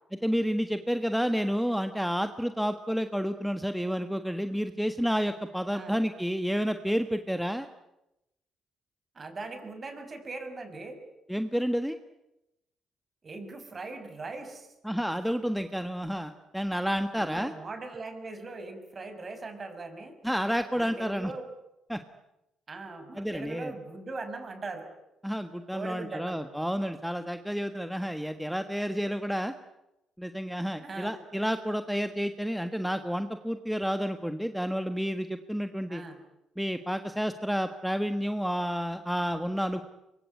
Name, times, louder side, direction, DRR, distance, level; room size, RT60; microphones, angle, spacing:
voice 1, 0.2-7.7 11.3-12.0 14.8-17.5 20.2-21.3 21.9-22.0 23.2-23.7 25.2-29.5 30.2-36.0 36.6-39.8, equal, ahead, 8 dB, 1.4 m, -30 dB
voice 2, 9.1-11.0 13.2-14.7 17.1-20.2 20.7-21.5 22.7-24.9 25.7-26.4 30.8-31.1 35.9-36.2, right 3 dB, 35° right, 8 dB, 6.0 m, -40 dB
24.0 x 23.5 x 9.6 m, 0.89 s
cardioid pair, 90°, 0 cm